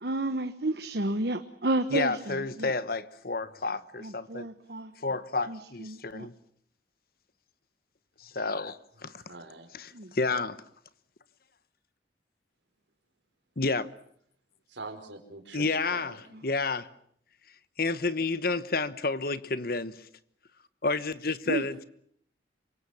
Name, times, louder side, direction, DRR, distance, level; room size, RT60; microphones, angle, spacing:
voice 1, 0.0-2.7 4.0-4.9 5.5-6.3 9.9-10.1 21.5-21.6, right 2 dB, 60° right, 1.1 m, -31 dB
voice 2, 1.9-4.5 5.0-6.3 8.2-9.2 9.7-10.6 13.6-13.9 15.5-16.9 17.8-20.0 20.8-21.8, left 3 dB, 50° left, 1.1 m, -30 dB
voice 3, 9.3-9.7 14.7-15.6 15.9-16.2, right 3 dB, 75° right, 4.6 m, -43 dB
27.5 x 24.0 x 7.1 m
head